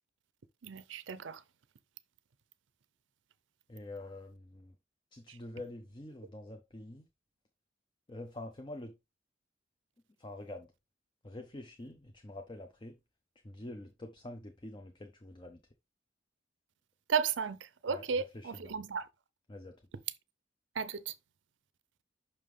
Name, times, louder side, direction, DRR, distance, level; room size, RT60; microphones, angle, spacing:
voice 1, 0.6-1.4 5.3-5.4 17.1-19.1 20.8-21.1, right 6 dB, 75° right, 0.5 m, -34 dB
voice 2, 3.7-4.7 5.1-7.1 8.1-8.9 10.2-10.7 11.2-13.0 13.4-15.6 17.9-18.8 19.5-19.8, left 1 dB, 25° left, 0.6 m, -46 dB
5.9 x 5.5 x 3.2 m
head